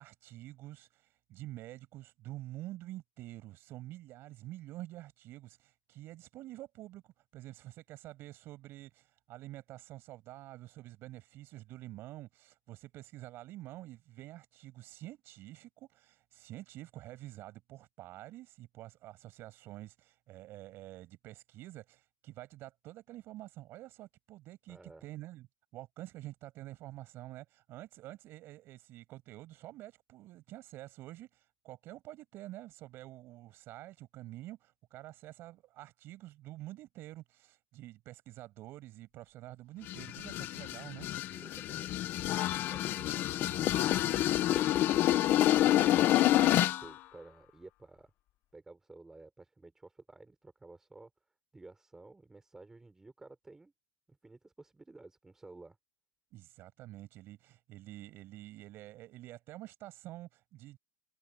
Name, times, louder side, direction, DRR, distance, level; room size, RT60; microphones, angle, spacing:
voice 1, 0.0-25.5 25.7-41.1 56.3-60.8, right 16 dB, 35° right, 7.7 m, -48 dB
voice 2, 24.7-25.1 41.3-42.1 42.7-45.0 45.5-46.1 46.4-48.1 48.5-51.1 51.5-53.7 54.1-55.8, right 3 dB, 5° right, 5.5 m, -54 dB
sound 1, 39.9-46.9, left 13 dB, 30° left, 1.0 m, -28 dB
supercardioid pair, 170°, 7 cm